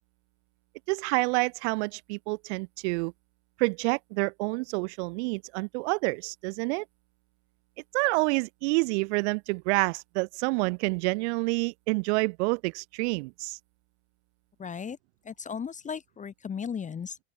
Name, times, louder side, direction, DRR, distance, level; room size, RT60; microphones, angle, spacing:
voice 1, 0.9-3.1 3.6-6.8 7.9-13.6, right 29 dB, 80° right, 0.6 m, -28 dB
voice 2, 14.6-15.0 15.2-17.2, left 7 dB, 20° left, 0.7 m, -36 dB
open air
supercardioid pair, 100°, 34 cm